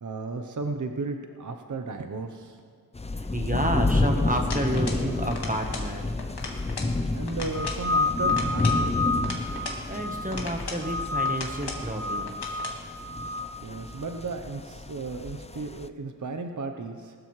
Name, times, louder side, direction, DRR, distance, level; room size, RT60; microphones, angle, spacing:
voice 1, 0.0-2.6 7.1-9.3 13.6-17.1, right 3 dB, 45° right, 5 dB, 0.8 m, -34 dB
sound 1, 2.9-15.9, left 2 dB, 15° left, 0.5 m, -30 dB
voice 2, 3.1-6.1 9.9-12.6, right 1 dB, 20° right, 3 dB, 1.1 m, -30 dB
sound 2, 4.5-5.1 5.3-5.9 6.2-6.9 7.3-7.8 8.3-9.8 10.3-10.9 11.2-11.9 12.3-12.8, left 3 dB, 75° left, 1.8 m, -37 dB
sound 3, 7.5-10.4 10.8-11.6 11.9-13.5, left 3 dB, 50° left, 1.3 m, -29 dB
19.0 x 13.0 x 3.2 m, 2.1 s
wide cardioid pair, 55°, 40 cm